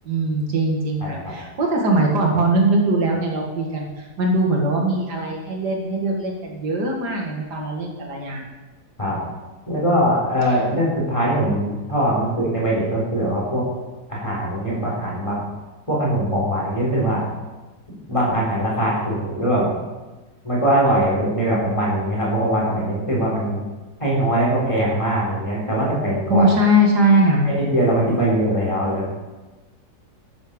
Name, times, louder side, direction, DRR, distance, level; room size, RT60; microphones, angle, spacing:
voice 1, 0.0-8.4 10.5-10.6 26.3-27.5, right 1 dB, 85° right, 0 dB, 2.6 m, -20 dB
voice 2, 1.0-1.3 9.0-9.2 9.7-13.6 14.1-15.4 15.9-17.2 18.1-19.7 20.4-23.6 24.0-26.5 27.4-29.1, right 1 dB, 20° left, -5 dB, 4.3 m, -21 dB
12.0 x 9.0 x 5.4 m, 1.2 s
omnidirectional pair, 1.7 m